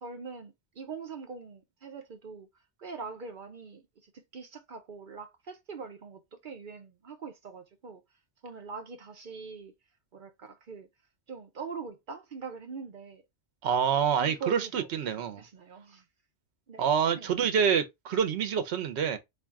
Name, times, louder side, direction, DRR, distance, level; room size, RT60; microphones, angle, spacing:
voice 1, 0.0-2.5 2.8-8.0 8.4-9.7 10.1-10.9 11.3-13.2 14.2-16.1 16.7-16.9 17.1-17.3, right 5 dB, 55° right, 0.7 m, -43 dB
voice 2, 13.6-15.4 16.8-19.2, right 7 dB, 80° right, 0.9 m, -27 dB
3.6 x 2.5 x 3.4 m
omnidirectional pair, 1.1 m